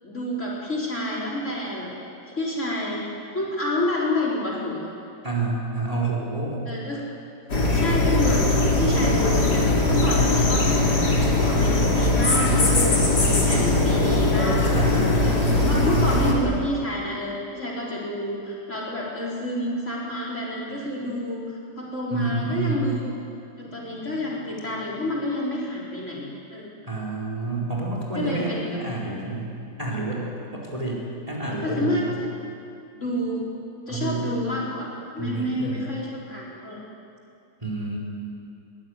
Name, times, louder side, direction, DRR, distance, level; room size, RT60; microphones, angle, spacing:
voice 1, 0.0-2.0 2.3-3.0 3.3-4.9 6.7-7.0 7.7-8.5 8.8-10.8 11.4-23.1 23.6-26.7 28.1-28.8 31.6-32.3 32.9-33.4 33.9-36.8, left 1 dB, 40° left, -3 dB, 4.6 m, -29 dB
voice 2, 5.2-6.7 10.0-10.3 14.7-16.1 22.1-22.8 26.8-29.5 29.8-30.3 30.5-32.0 33.9-34.2 35.2-35.9 37.6-38.0, right 2 dB, 20° right, -3 dB, 4.7 m, -29 dB
sound 1, 7.5-16.3, left 2 dB, 55° left, 4.1 m, -20 dB
22.0 x 20.5 x 9.8 m, 2.6 s
omnidirectional pair, 2.1 m